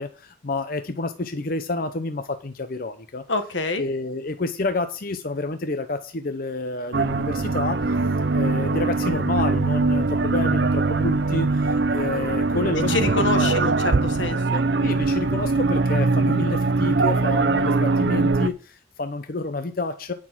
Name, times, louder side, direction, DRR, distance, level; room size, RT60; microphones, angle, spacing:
voice 1, 0.0-3.2 3.8-8.0 8.3-13.7 14.8-20.1, left 2 dB, 50° left, 0.7 m, -29 dB
voice 2, 3.3-3.8 12.9-14.6, left 3 dB, 85° left, 1.5 m, -26 dB
sound 1, 6.9-18.5, right 3 dB, 65° right, 0.6 m, -22 dB
9.6 x 6.3 x 6.0 m
head